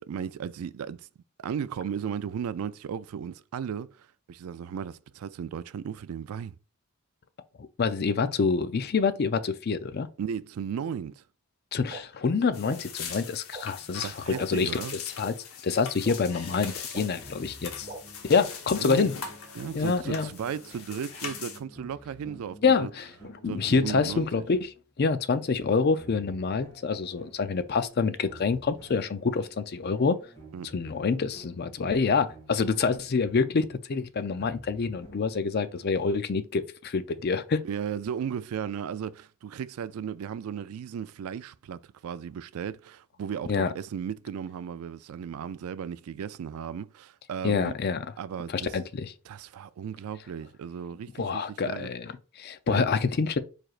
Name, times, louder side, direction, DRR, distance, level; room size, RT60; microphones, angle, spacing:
voice 1, 0.1-1.1 1.4-6.6 10.2-11.2 14.0-14.9 18.8-19.1 19.6-22.9 23.4-24.5 30.5-30.7 37.6-47.7 48.2-48.8 49.3-51.9 52.7-52.9, right 8 dB, 75° right, 0.3 m, -35 dB
voice 2, 7.8-10.1 11.7-15.3 15.6-17.9 18.3-19.2 19.7-20.3 22.6-23.1 23.4-30.2 30.7-37.6 43.5-43.7 47.4-48.0 48.5-49.1 51.2-53.4, left 5 dB, 45° left, 0.4 m, -27 dB
sound 1, 11.9-12.0 12.6-12.7 13.5-13.6 14.3-14.4 15.2-15.3 16.0-16.1 16.9-17.0 17.9-18.0 18.9-19.0, right 3 dB, 35° right, 0.9 m, -39 dB
sound 2, 12.5-21.6, left 6 dB, 75° left, 0.9 m, -41 dB
sound 3, 17.2-24.8 26.0-33.5 34.4-36.2, right 1 dB, 15° left, 1.7 m, -52 dB
4.8 x 4.4 x 2.4 m
head